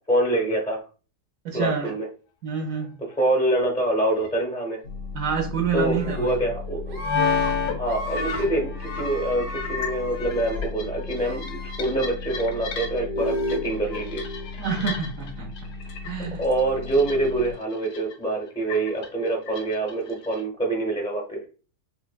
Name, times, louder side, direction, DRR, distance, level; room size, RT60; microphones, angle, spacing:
voice 1, 0.1-0.8 1.5-2.1 3.2-4.8 5.7-7.0 7.7-14.2 16.4-21.4, right 2 dB, 5° left, 0.5 m, -25 dB
voice 2, 1.4-1.9 2.4-3.0 5.1-6.5 14.6-15.5 16.0-16.4, right 6 dB, 65° right, 0.9 m, -28 dB
sound 1, 4.2-4.3 7.0-7.8 8.0-15.3 15.6-16.1 16.4-17.5 17.8-18.1 18.7-20.4, left 5 dB, 85° left, 1.4 m, -30 dB
sound 2, 4.8-17.5, left 4 dB, 65° left, 1.2 m, -37 dB
Screaming, 5.8-6.3 6.9-7.5 7.8-8.5 8.8-10.7 11.1-11.9, equal, 85° right, 1.5 m, -37 dB
5.7 x 2.1 x 2.2 m
omnidirectional pair, 1.7 m